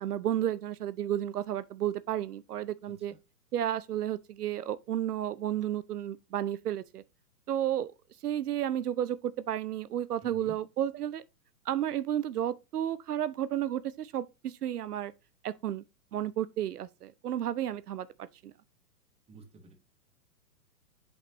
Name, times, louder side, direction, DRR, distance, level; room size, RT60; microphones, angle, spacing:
voice 1, 0.0-3.1 3.5-7.0 7.5-7.9 8.2-11.2 11.7-15.1 15.4-15.8 16.1-18.1 18.4-18.5, right 11 dB, 75° right, 0.6 m, -32 dB
voice 2, 2.8-3.2 10.2-10.6 19.3-19.7, right 3 dB, 15° right, 1.2 m, -50 dB
8.3 x 5.4 x 2.9 m
figure-of-eight pair, 120°, 47 cm